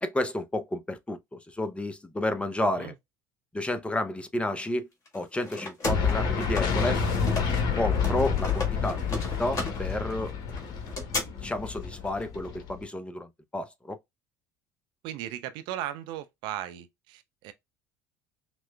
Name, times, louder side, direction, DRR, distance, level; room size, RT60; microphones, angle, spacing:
voice 1, 0.0-2.9 3.5-4.9 5.1-7.0 7.8-10.3 11.3-14.0, left 1 dB, 10° left, 0.7 m, -31 dB
sound 1, 5.1-7.7 7.9-11.2, left 2 dB, 35° left, 2.0 m, -35 dB
sound 2, 5.8-12.8, left 6 dB, 50° left, 1.0 m, -29 dB
voice 2, 15.0-17.5, right 12 dB, 60° right, 0.5 m, -37 dB
5.8 x 2.2 x 2.3 m
figure-of-eight pair, 60°, 9 cm